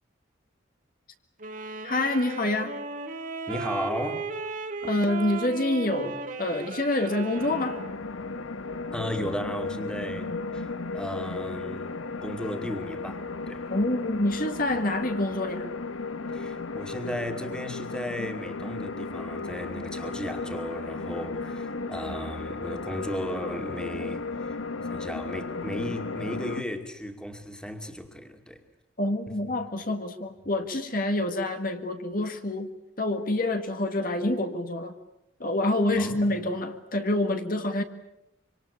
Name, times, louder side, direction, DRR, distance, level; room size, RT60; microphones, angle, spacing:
sound 1, 1.4-8.0, right 4 dB, 40° right, 2.3 m, -36 dB
voice 1, 1.8-2.8 4.8-7.8 13.7-15.7 29.0-32.7 33.0-34.9 35.4-37.8, left 1 dB, 45° left, 1.8 m, -27 dB
voice 2, 3.5-4.3 8.9-13.7 16.3-28.6 29.3-29.5 36.0-36.4, equal, 5° left, 2.3 m, -35 dB
sound 2, 7.4-26.6, left 3 dB, 85° left, 1.2 m, -35 dB
26.0 x 25.5 x 8.6 m
head